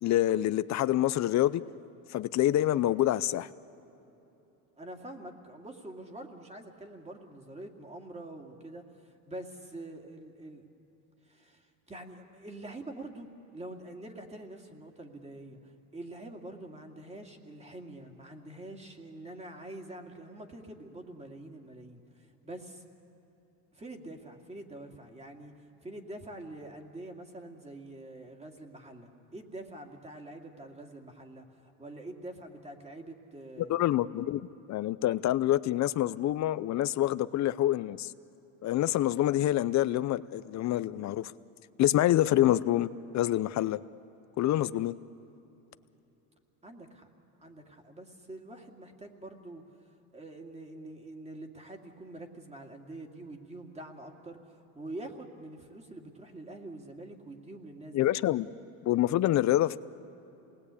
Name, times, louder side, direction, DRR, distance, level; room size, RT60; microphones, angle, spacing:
voice 1, 0.0-1.6 2.1-3.5 33.6-34.4 34.7-38.1 38.6-41.3 41.8-43.8 44.4-45.0 57.9-58.5 58.8-59.8, left 13 dB, 45° left, 15 dB, 0.6 m, -26 dB
voice 2, 4.8-10.6 11.2-22.8 23.7-25.5 25.8-33.9 46.6-47.1 47.4-49.6 50.1-58.1, right 1 dB, 15° right, 3 dB, 2.5 m, -45 dB
27.5 x 20.0 x 8.4 m, 3.0 s
supercardioid pair, 105°, 38 cm